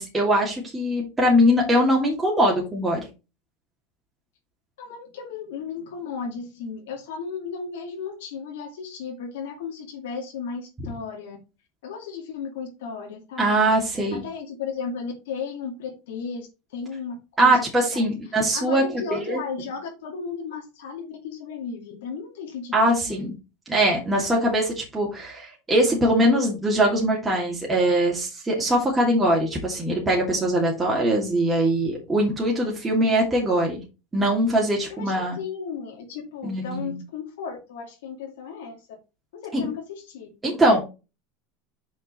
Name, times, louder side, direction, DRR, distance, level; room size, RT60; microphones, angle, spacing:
voice 1, 0.0-3.0 13.4-14.2 17.4-19.4 22.7-23.3 23.7-33.8 34.1-35.4 36.4-37.0 39.5-39.7 40.4-40.8, right 1 dB, 15° right, -3 dB, 2.6 m, -22 dB
voice 2, 4.8-11.4 11.8-13.7 14.1-17.7 17.9-18.1 18.5-22.8 23.0-23.3 34.9-38.8 39.3-40.3, left 5 dB, 85° left, 0 dB, 2.4 m, -35 dB
5.8 x 5.7 x 4.4 m, 0.29 s
supercardioid pair, 120°, 0 cm